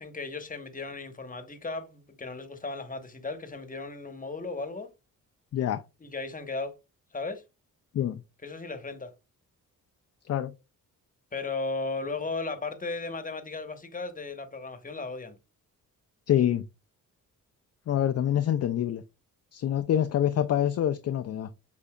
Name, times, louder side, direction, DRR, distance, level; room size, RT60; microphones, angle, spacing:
voice 1, 0.0-4.9 6.0-6.8 7.1-7.4 8.4-9.1 11.3-15.4, left 3 dB, 25° left, 1.0 m, -36 dB
voice 2, 16.3-16.6 17.9-19.0 19.5-21.5, left 10 dB, 45° left, 0.4 m, -26 dB
6.8 x 2.7 x 2.2 m
cardioid pair, 70°, 35 cm